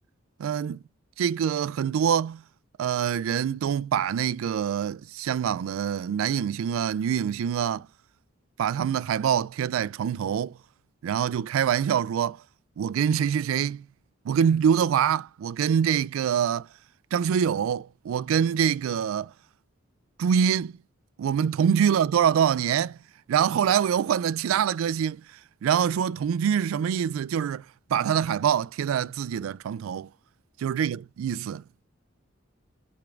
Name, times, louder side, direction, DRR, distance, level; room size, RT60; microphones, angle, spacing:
voice 1, 0.4-0.8 1.2-2.4 2.8-7.9 8.6-10.6 11.0-12.4 12.8-13.9 14.2-16.7 17.1-19.3 20.2-20.7 21.2-23.0 23.3-25.2 25.6-27.6 27.9-30.1 30.6-31.6, right 8 dB, 85° right, 0.3 m, -25 dB
6.9 x 3.6 x 4.5 m
head